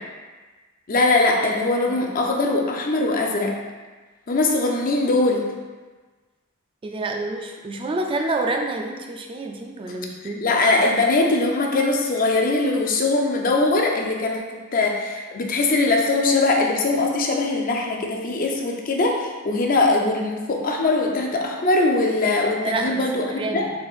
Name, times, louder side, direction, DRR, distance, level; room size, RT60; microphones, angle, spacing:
voice 1, 0.9-3.5 4.3-5.5 10.2-23.7, left 2 dB, 40° left, 1 dB, 0.5 m, -21 dB
voice 2, 6.8-10.4 22.6-23.7, right 2 dB, 25° right, 3 dB, 0.3 m, -28 dB
4.5 x 4.1 x 2.4 m, 1.3 s
head